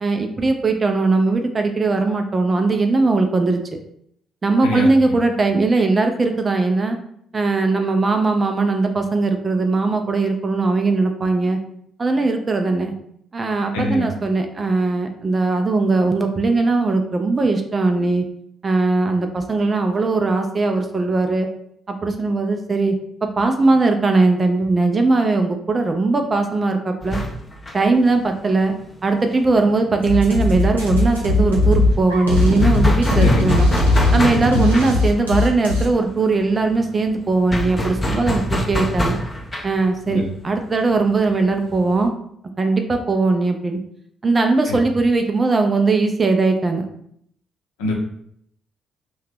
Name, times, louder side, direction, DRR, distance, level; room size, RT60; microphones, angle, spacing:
voice 1, 0.0-3.6 4.4-7.0 7.3-11.6 12.0-12.9 13.3-18.2 18.6-21.5 21.9-27.2 27.7-28.8 29.0-33.7 34.1-39.2 39.6-42.1 42.6-43.8 44.2-46.9, right 3 dB, 30° right, 5 dB, 0.4 m, -19 dB
voice 2, 4.6-5.1 13.7-14.1 33.2-33.5 34.5-34.7 40.1-40.3 44.7-44.8 47.8-47.9, left 1 dB, 70° left, -1 dB, 0.6 m, -23 dB
sound 1, 27.0-30.4 30.7-30.8 31.1-42.1, left 1 dB, 25° left, 0.6 m, -27 dB
sound 2, 30.0-35.9, left 2 dB, 85° right, 0.5 m, -18 dB
2.7 x 2.2 x 3.4 m, 0.69 s
figure-of-eight pair, 45°, 0 cm